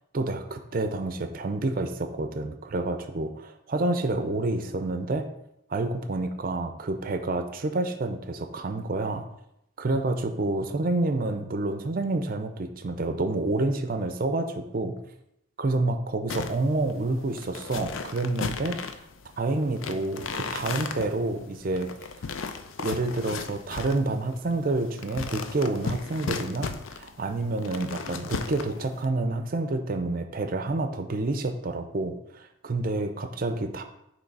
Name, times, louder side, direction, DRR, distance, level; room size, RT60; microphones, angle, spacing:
voice 1, 0.1-5.3 5.7-9.2 9.8-14.9 15.6-18.8 19.4-21.9 22.8-33.8, right 2 dB, 45° right, 7 dB, 0.5 m, -28 dB
sound 1, 16.3-29.1, left 5 dB, 75° left, 0.4 m, -36 dB
6.5 x 3.2 x 4.6 m, 0.81 s
head